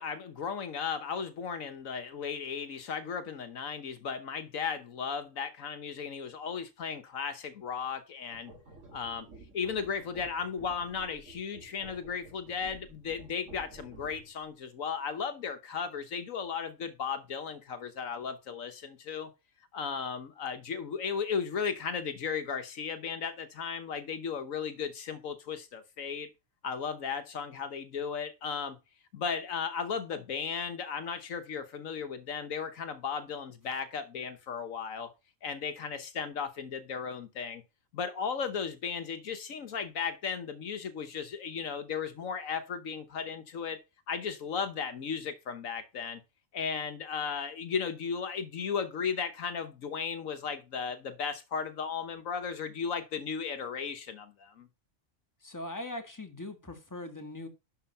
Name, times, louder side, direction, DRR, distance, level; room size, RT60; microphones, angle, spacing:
voice 1, 0.0-8.5 8.9-9.3 9.5-19.3 19.7-26.3 26.6-28.8 29.1-35.1 35.4-37.6 37.9-43.8 44.1-46.2 46.5-54.7, left 6 dB, 75° left, 1.4 m, -35 dB
sound 1, 8.3-14.5, right 2 dB, 65° right, 2.3 m, -52 dB
voice 2, 55.4-57.5, left 1 dB, 15° left, 1.8 m, -40 dB
11.5 x 4.7 x 5.6 m
omnidirectional pair, 1.4 m